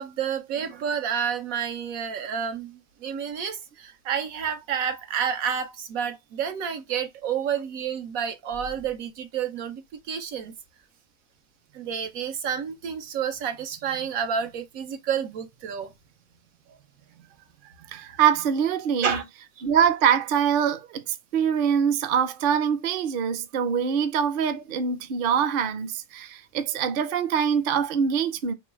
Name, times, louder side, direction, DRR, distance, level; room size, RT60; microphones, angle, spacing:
voice 1, 0.0-10.5 11.7-15.9 19.0-19.2, right 7 dB, 85° right, 1.2 m, -30 dB
voice 2, 17.9-19.2 19.6-28.5, right 8 dB, 55° right, 0.6 m, -24 dB
3.1 x 3.0 x 4.5 m
omnidirectional pair, 1.4 m